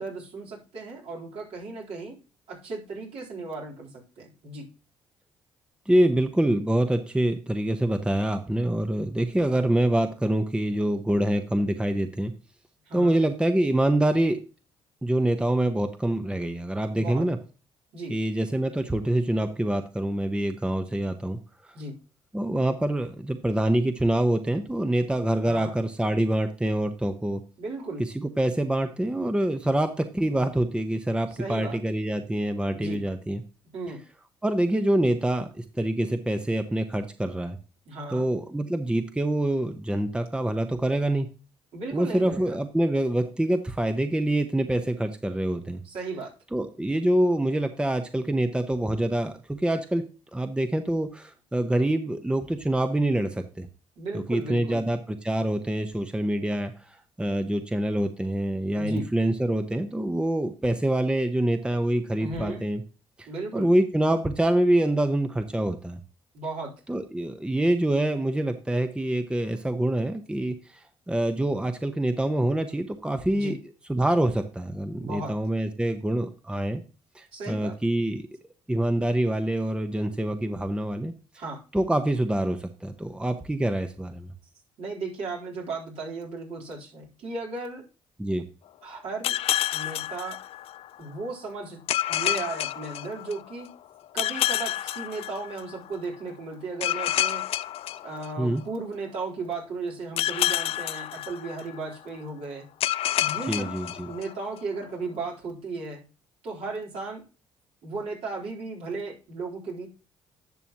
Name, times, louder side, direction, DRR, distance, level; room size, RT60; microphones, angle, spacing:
voice 1, 0.0-2.2 2.5-4.7 12.9-13.2 16.9-17.3 17.9-18.1 21.7-21.9 25.3-25.7 27.6-28.0 31.3-31.8 32.7-33.0 33.7-34.0 37.9-38.2 41.7-42.6 45.8-46.3 54.0-54.9 58.8-59.1 62.2-62.6 63.3-63.7 66.3-66.7 73.3-73.6 75.0-75.3 77.3-77.8 81.4-81.6 84.8-87.8 88.8-89.4 89.7-90.4 91.0-91.8 92.1-93.7 94.1-97.4 98.0-102.7 103.2-103.7 104.1-106.0 106.4-107.2 107.8-109.9, right 3 dB, 65° right, -2 dB, 3.9 m, -35 dB
voice 2, 5.9-12.3 12.9-14.4 15.0-17.4 18.1-21.4 22.3-27.4 28.0-33.4 34.4-37.6 38.1-41.3 41.9-45.8 46.5-50.0 50.3-53.7 54.1-56.7 57.2-62.8 63.5-66.0 66.9-73.6 73.9-76.8 77.1-78.3 78.7-81.1 81.7-84.3 88.2-88.4 98.4-98.6 103.5-104.1, right 1 dB, 10° right, 7 dB, 1.0 m, -25 dB
sound 1, 89.2-91.0 91.9-93.6 94.2-95.9 96.8-98.8 100.2-101.9 102.8-104.6, left 13 dB, 65° left, 0.4 m, -29 dB
11.0 x 6.1 x 3.0 m, 0.33 s
supercardioid pair, 65°, 11 cm